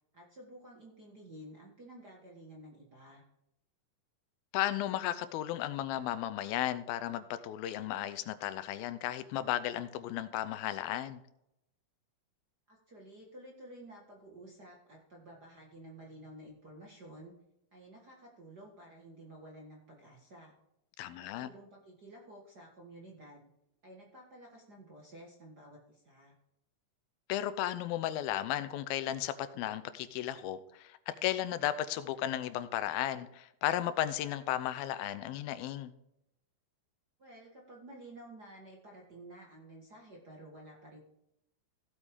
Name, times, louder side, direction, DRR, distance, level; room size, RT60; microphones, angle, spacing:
voice 1, 0.1-3.2 12.7-17.3 17.7-20.6 21.1-23.5 23.8-26.3 37.2-41.0, right 1 dB, 45° right, -1 dB, 1.4 m, -52 dB
voice 2, 4.5-11.2 21.0-21.5 27.3-35.9, left 12 dB, 90° left, 13 dB, 2.6 m, -34 dB
15.5 x 8.2 x 3.6 m, 0.82 s
omnidirectional pair, 4.1 m